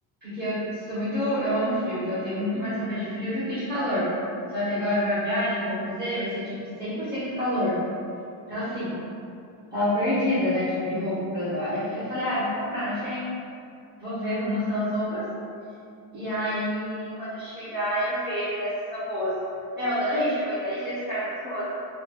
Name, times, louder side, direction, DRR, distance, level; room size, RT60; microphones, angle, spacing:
voice 1, 0.2-4.1 4.5-7.8 8.5-8.9 9.7-13.2 14.0-15.3 16.1-19.3 19.7-21.7, equal, 20° right, -14 dB, 1.2 m, -28 dB
3.3 x 2.7 x 2.3 m, 2.5 s
cardioid pair, 145°, 47 cm